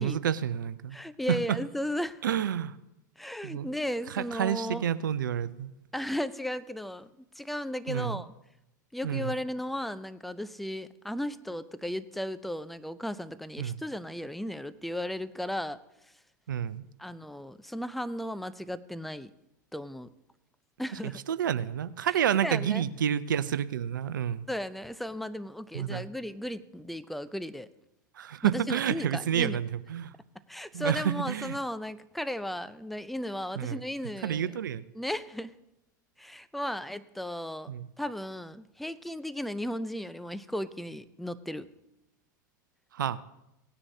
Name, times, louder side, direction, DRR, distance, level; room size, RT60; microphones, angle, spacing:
voice 1, 0.0-1.0 1.3-1.6 2.2-2.8 3.4-3.7 4.1-5.7 7.9-8.2 9.0-9.3 13.6-13.8 16.5-16.8 21.0-24.5 25.7-26.0 28.1-30.1 30.7-31.6 33.6-33.8 34.2-34.8 37.7-37.9 42.9-43.2, right 9 dB, 80° right, 15 dB, 0.6 m, -29 dB
voice 2, 0.9-2.2 3.2-4.8 5.9-8.3 8.9-16.1 17.0-19.3 19.7-20.1 20.8-21.2 22.4-22.8 24.5-27.7 28.4-29.6 30.5-34.5 34.9-35.5 36.2-41.7, left 1 dB, ahead, 14 dB, 0.6 m, -35 dB
18.5 x 9.8 x 2.8 m, 0.89 s
hypercardioid pair, 95°, 11 cm